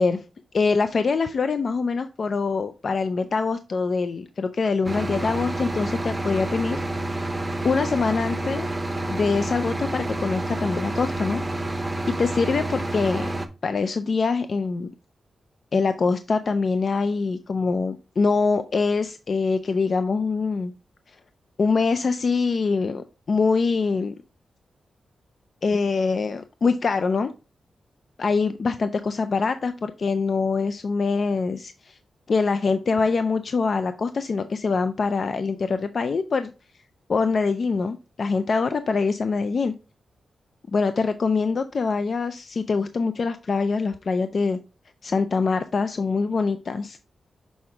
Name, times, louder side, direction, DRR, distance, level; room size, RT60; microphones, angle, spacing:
voice 1, 0.5-6.8 7.6-8.7 9.1-11.4 11.7-11.8 12.2-13.3 13.6-14.9 15.7-20.7 21.6-24.2 25.6-27.3 28.2-32.0 32.3-36.5 37.1-39.7 40.7-44.6 45.0-47.0, left 4 dB, 40° left, 10 dB, 0.4 m, -24 dB
sound 1, 4.8-13.5, right 1 dB, 15° right, 0.7 m, -29 dB
6.1 x 4.8 x 3.4 m, 0.32 s
wide cardioid pair, 170°, 0 cm